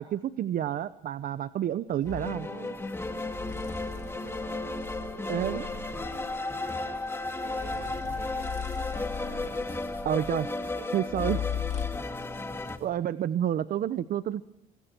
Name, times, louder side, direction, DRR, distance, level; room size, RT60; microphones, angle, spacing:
voice 1, 0.0-2.5 5.3-5.7 10.0-10.5 10.9-11.4 12.8-14.4, right 11 dB, 55° right, 13 dB, 0.9 m, -29 dB
sound 1, 2.0-2.4 3.3-6.2 7.5-9.7 11.1-12.2, left 8 dB, 40° left, 2.4 m, -37 dB
sound 2, 2.1-12.8, left 2 dB, 15° left, 2.0 m, -34 dB
voice 2, 2.4-3.0 3.6-9.8 10.5-12.1, right 6 dB, 85° right, 1 dB, 3.9 m, -49 dB
sound 3, 2.7-12.9, equal, 15° right, 7.5 m, -52 dB
25.0 x 25.0 x 4.6 m, 0.83 s
cardioid pair, 110°, 17 cm